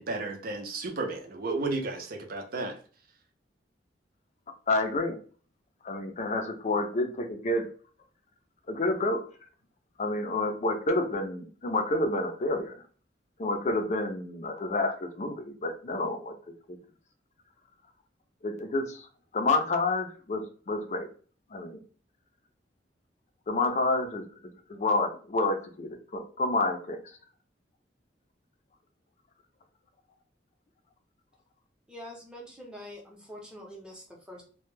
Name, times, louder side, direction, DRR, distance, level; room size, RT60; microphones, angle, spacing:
voice 1, 0.0-2.8, right 3 dB, 55° right, 4 dB, 0.5 m, -33 dB
voice 2, 4.7-5.2 5.8-7.7 8.7-9.2 10.0-12.7 13.4-16.3 18.4-19.1 19.3-21.1 21.5-21.8 23.5-24.2 24.7-27.0, left 2 dB, 40° left, 4 dB, 0.4 m, -29 dB
voice 3, 31.9-34.4, left 1 dB, 5° right, -2 dB, 0.6 m, -45 dB
2.1 x 2.1 x 3.0 m, 0.41 s
head